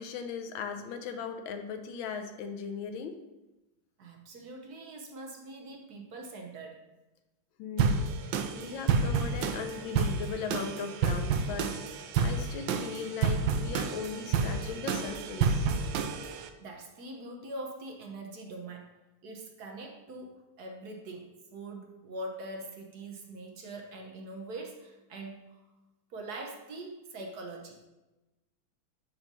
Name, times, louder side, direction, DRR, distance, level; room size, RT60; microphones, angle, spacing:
voice 1, 0.0-3.2 7.6-8.1 8.5-15.7, left 6 dB, 80° left, 7 dB, 1.5 m, -38 dB
voice 2, 4.0-6.8 16.6-18.9 19.2-25.6 26.1-27.8, right 2 dB, 60° right, 1 dB, 1.4 m, -43 dB
sound 1, 7.8-16.5, right 5 dB, 80° right, 1.3 m, -30 dB
5.4 x 5.4 x 6.0 m, 1.0 s
omnidirectional pair, 2.1 m